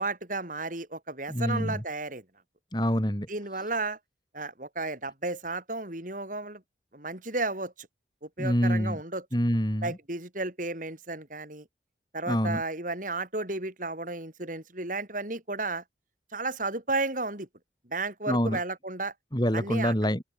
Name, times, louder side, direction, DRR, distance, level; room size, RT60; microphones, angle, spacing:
voice 1, 0.0-2.2 3.3-4.0 4.3-6.6 6.9-7.9 8.2-9.3 9.8-11.6 12.1-15.8 16.3-17.5 17.9-19.1 19.5-19.9, right 2 dB, 45° right, 4.5 m, -33 dB
voice 2, 1.3-1.8 2.7-3.3 8.4-9.0 9.3-10.0 12.3-12.6 18.3-18.6 19.3-20.2, equal, 25° left, 6.7 m, -26 dB
open air
head